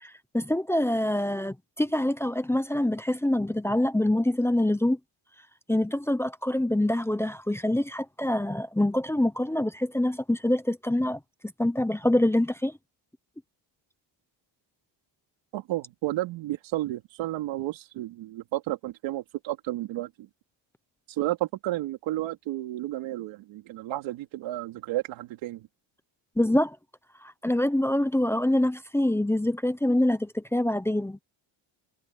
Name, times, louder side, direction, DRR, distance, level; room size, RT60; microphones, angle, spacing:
voice 1, 0.0-5.0 5.7-11.2 11.6-12.7 26.4-26.8 27.2-31.2, left 1 dB, 5° left, 0.9 m, -25 dB
voice 2, 15.5-20.3 21.2-25.6, right 15 dB, 90° right, 3.6 m, -32 dB
cardioid pair, 120°, 44 cm